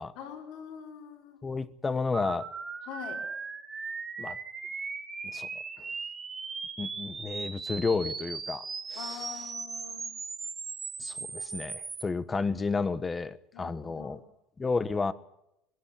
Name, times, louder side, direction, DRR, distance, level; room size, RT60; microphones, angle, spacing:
voice 1, 0.1-1.4 2.9-3.2 9.0-10.1 13.5-14.2, left 8 dB, 70° left, 2 dB, 5.8 m, -43 dB
voice 2, 1.4-2.5 4.2-4.4 5.3-5.5 5.8-5.9 6.8-8.6 8.9-9.3 11.0-14.2 14.6-15.1, left 4 dB, 20° left, 14 dB, 1.2 m, -31 dB
sound 1, 2.1-12.0, right 5 dB, 20° right, 2.6 m, -38 dB
21.0 x 15.5 x 8.8 m, 0.84 s
cardioid pair, 130°, 0 cm